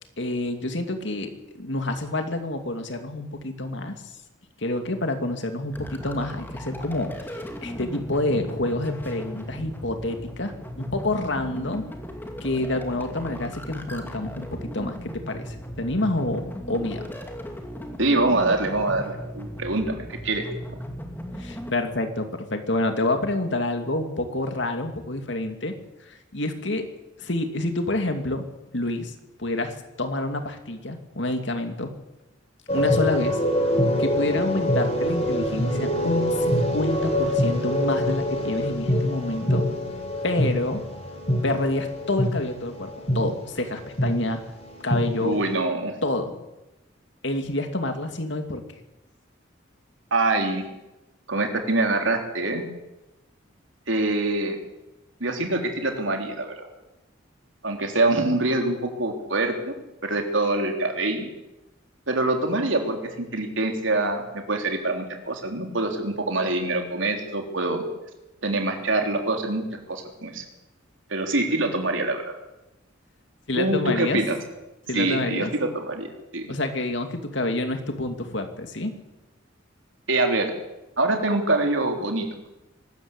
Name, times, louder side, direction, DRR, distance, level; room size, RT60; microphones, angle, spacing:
voice 1, 0.2-3.9 4.6-11.8 12.4-17.0 21.4-25.7 26.0-26.8 27.2-28.4 28.7-29.1 29.4-31.9 32.7-33.4 34.0-39.6 40.2-40.8 41.4-44.4 44.8-45.4 46.0-46.4 47.2-48.6 73.5-74.2 74.9-75.5 76.5-78.9, left 2 dB, 65° left, 6 dB, 2.6 m, -28 dB
sound 1, 5.7-21.7, equal, 10° left, 2.4 m, -37 dB
voice 2, 18.0-20.5 45.2-45.9 50.1-50.7 51.3-52.6 53.9-54.6 55.2-56.7 57.6-59.7 60.0-61.3 62.1-67.8 68.4-70.4 71.1-72.2 73.6-74.4 74.9-76.1 76.3-76.5 80.1-80.5 81.0-82.3, right 2 dB, 80° right, 3 dB, 3.7 m, -25 dB
sound 2, 32.7-43.5 44.0-44.1 44.5-45.0, left 1 dB, 35° left, 4.8 m, -25 dB
23.0 x 13.5 x 8.4 m, 0.98 s
head